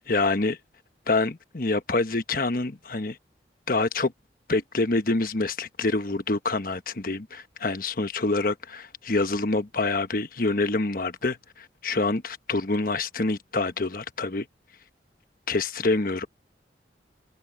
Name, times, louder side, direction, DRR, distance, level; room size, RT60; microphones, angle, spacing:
voice 1, 0.1-0.6 1.1-3.2 3.7-4.1 4.5-14.5 15.5-16.3, left 3 dB, 50° left, 1.2 m, -26 dB
head